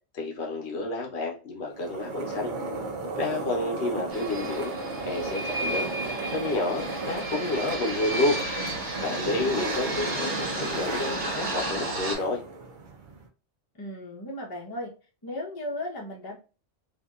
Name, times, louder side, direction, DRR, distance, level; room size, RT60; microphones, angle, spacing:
voice 1, 0.1-2.5 3.2-4.7 5.0-5.9 6.3-8.4 9.0-12.4, left 2 dB, 70° left, 1 dB, 1.0 m, -30 dB
sound 1, 1.7-13.3, right 2 dB, 50° right, 0.7 m, -35 dB
sound 2, 4.1-12.2, right 2 dB, 80° right, 1.3 m, -33 dB
voice 2, 9.4-10.1 13.8-14.9 15.2-16.4, left 1 dB, 25° left, -2 dB, 0.7 m, -36 dB
2.8 x 2.6 x 2.3 m, 0.33 s
omnidirectional pair, 1.2 m